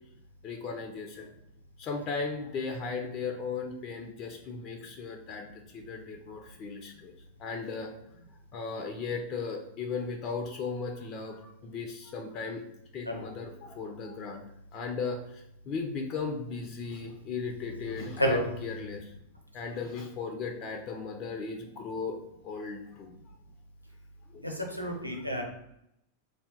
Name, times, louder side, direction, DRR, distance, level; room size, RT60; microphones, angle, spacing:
voice 1, 0.4-1.3 1.8-5.5 5.7-7.1 7.4-7.9 8.5-12.6 12.9-14.4 14.7-19.1 19.5-22.2 22.4-23.1 24.3-24.5, left 4 dB, 35° left, 3 dB, 0.4 m, -36 dB
voice 2, 24.4-25.4, equal, 90° left, 1 dB, 0.5 m, -29 dB
2.6 x 2.2 x 3.5 m, 0.77 s
figure-of-eight pair, 90°, 0 cm